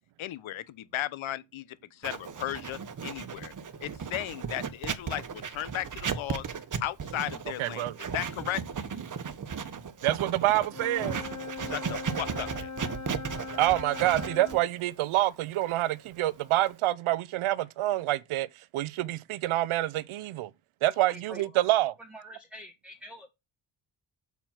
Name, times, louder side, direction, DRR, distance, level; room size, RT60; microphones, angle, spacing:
voice 1, 0.2-3.5 3.8-6.5 6.8-8.6 11.6-12.7, left 13 dB, 75° left, 0.9 m, -36 dB
Writing, 2.0-16.8, right 6 dB, 40° right, 1.1 m, -36 dB
voice 2, 7.6-7.9 10.0-11.2 13.6-18.5 18.7-20.5 20.8-21.9, right 15 dB, 85° right, 0.7 m, -27 dB
Wind instrument woodwind instrument, 10.7-14.6, left 4 dB, 35° left, 1.5 m, -40 dB
voice 3, 21.1-21.4 21.7-21.8 22.1-23.3, equal, ahead, 1.6 m, -46 dB
7.0 x 4.5 x 5.7 m
cardioid pair, 85°, 48 cm